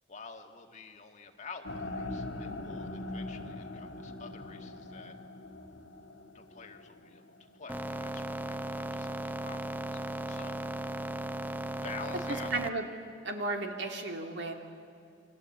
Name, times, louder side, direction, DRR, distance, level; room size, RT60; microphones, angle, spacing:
voice 1, 0.1-5.2 6.3-7.2 7.5-11.2 11.8-12.5, left 4 dB, 40° left, 4 dB, 2.0 m, -49 dB
sound 1, 1.6-7.8, left 2 dB, 70° left, 2.2 m, -42 dB
sound 2, 7.7-12.7, right 1 dB, 10° right, 0.6 m, -36 dB
voice 2, 12.3-12.8 13.2-14.5, right 2 dB, 65° right, 4 dB, 3.0 m, -34 dB
29.0 x 24.0 x 8.5 m, 2.6 s
head